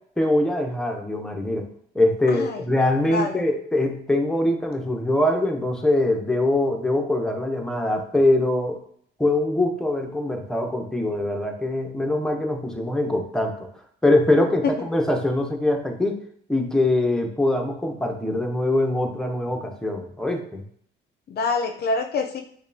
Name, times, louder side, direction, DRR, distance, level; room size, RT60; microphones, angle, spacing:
voice 1, 0.2-1.7 1.9-8.8 9.2-13.7 14.0-16.2 16.5-20.6, left 1 dB, 5° left, 3 dB, 0.7 m, -23 dB
voice 2, 2.3-2.6 3.1-3.5 14.6-14.7 21.3-22.4, left 4 dB, 55° left, 5 dB, 0.4 m, -25 dB
5.2 x 2.2 x 2.6 m, 0.63 s
cardioid pair, 90°, 20 cm